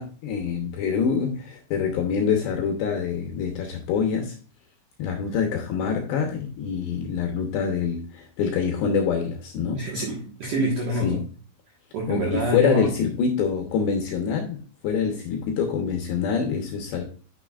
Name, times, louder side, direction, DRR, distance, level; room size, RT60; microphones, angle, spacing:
voice 1, 0.0-4.4 5.0-9.8 11.0-11.2 12.1-14.6 14.8-17.0, left 6 dB, 75° left, 4 dB, 2.7 m, -25 dB
voice 2, 9.7-11.2 11.9-12.9, right 1 dB, 65° right, -2 dB, 2.0 m, -26 dB
9.6 x 6.5 x 2.4 m, 0.39 s
omnidirectional pair, 6.0 m